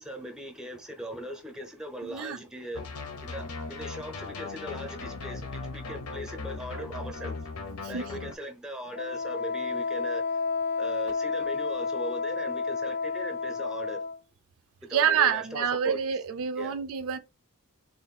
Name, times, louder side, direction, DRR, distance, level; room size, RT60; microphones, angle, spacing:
voice 1, 0.0-2.9 3.2-7.4 7.9-10.4 10.8-14.0 14.8-16.0 16.6-16.8, equal, 5° right, 0.7 m, -39 dB
voice 2, 2.0-2.4 7.8-8.0 14.9-17.2, right 7 dB, 65° right, 0.4 m, -27 dB
sound 1, 2.7-8.3, left 3 dB, 75° left, 0.9 m, -38 dB
Wind instrument woodwind instrument, 8.9-14.2, left 4 dB, 45° left, 0.5 m, -31 dB
3.8 x 2.5 x 4.1 m
head